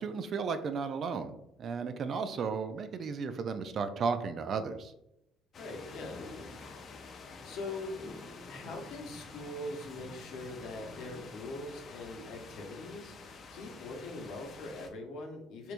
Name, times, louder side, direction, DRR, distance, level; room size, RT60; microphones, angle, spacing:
voice 1, 0.0-1.3 1.6-4.9, right 5 dB, 45° right, 9 dB, 0.3 m, -34 dB
sound 1, 5.5-14.9, left 3 dB, 40° left, 0.4 m, -48 dB
voice 2, 5.6-6.2 7.4-7.9 8.5-15.7, left 2 dB, 70° left, 1 dB, 0.8 m, -42 dB
3.4 x 2.9 x 2.5 m, 0.82 s
cardioid pair, 130°, 0 cm